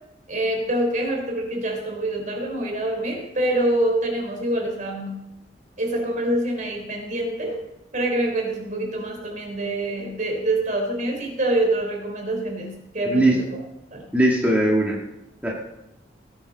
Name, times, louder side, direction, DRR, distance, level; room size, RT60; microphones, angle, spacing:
voice 1, 0.3-5.1 5.8-7.6 7.9-13.3 13.9-14.0, right 1 dB, 45° right, 0 dB, 3.5 m, -25 dB
voice 2, 14.1-15.0 15.4-15.5, right 1 dB, 10° right, -4 dB, 1.8 m, -19 dB
18.0 x 9.4 x 4.0 m, 0.89 s
head